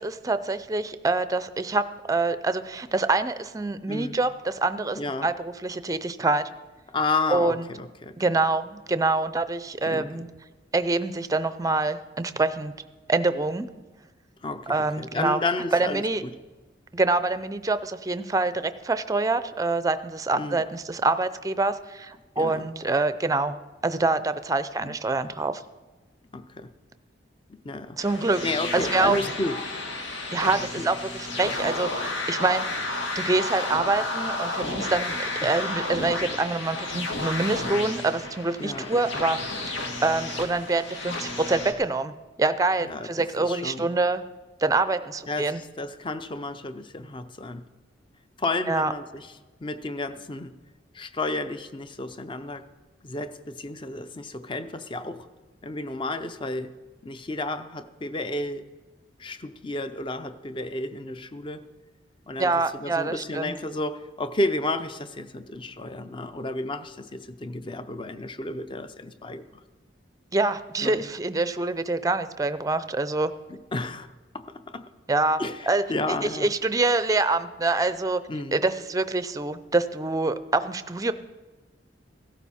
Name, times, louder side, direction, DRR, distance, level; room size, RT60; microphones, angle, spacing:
voice 1, 0.0-6.4 7.3-7.6 8.2-10.3 10.7-12.7 13.1-13.7 14.7-15.4 15.7-16.2 16.9-23.5 23.8-25.6 28.0-28.4 28.7-29.2 30.3-32.6 33.1-44.2 44.6-45.6 48.7-48.9 62.4-63.5 70.3-73.3 75.1-75.4 75.7-75.8 76.3-78.2 78.5-81.1, right 3 dB, 20° right, 13 dB, 0.5 m, -25 dB
voice 2, 4.9-5.3 6.9-8.2 9.8-10.3 14.4-16.3 20.3-20.6 22.4-22.7 24.8-25.0 26.3-26.7 27.5-28.0 28.4-29.6 30.8-30.9 35.4-35.5 38.6-39.0 42.8-43.9 45.3-47.6 48.4-49.3 49.6-50.5 50.9-52.6 53.0-55.3 55.6-56.7 57.0-58.7 59.2-61.6 62.3-69.6 70.8-71.1 73.5-74.1 74.3-74.9 75.4-76.5 78.3-78.6, left 2 dB, 25° left, 11 dB, 0.6 m, -32 dB
sound 1, 28.0-41.7, left 2 dB, 80° left, 1.8 m, -32 dB
15.5 x 13.0 x 4.3 m, 1.2 s
head